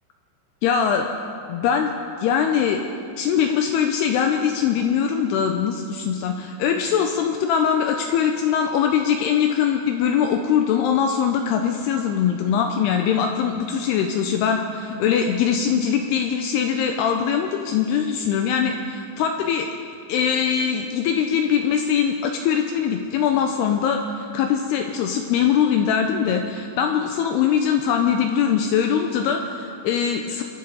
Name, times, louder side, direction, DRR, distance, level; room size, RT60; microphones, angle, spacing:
voice 1, 0.6-1.1 1.5-2.8 3.2-19.7 20.1-30.4, left 7 dB, 90° left, 4 dB, 2.4 m, -22 dB
27.0 x 11.0 x 4.0 m, 2.5 s
omnidirectional pair, 5.4 m